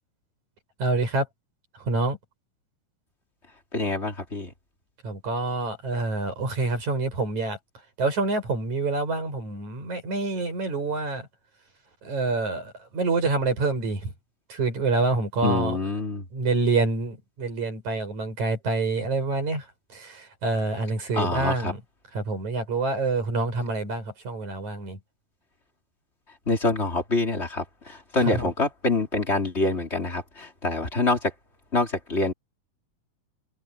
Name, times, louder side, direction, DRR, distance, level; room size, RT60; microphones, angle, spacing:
voice 1, 0.8-1.3 1.9-2.2 5.0-7.6 8.0-11.3 12.0-14.1 14.5-15.8 16.3-19.6 19.9-21.8 22.1-25.0 28.3-28.5, right 3 dB, 55° right, 8.0 m, -27 dB
voice 2, 3.7-4.5 15.4-16.2 21.1-21.7 26.5-31.3 31.7-32.3, left 2 dB, 20° left, 3.4 m, -26 dB
omnidirectional pair, 4.0 m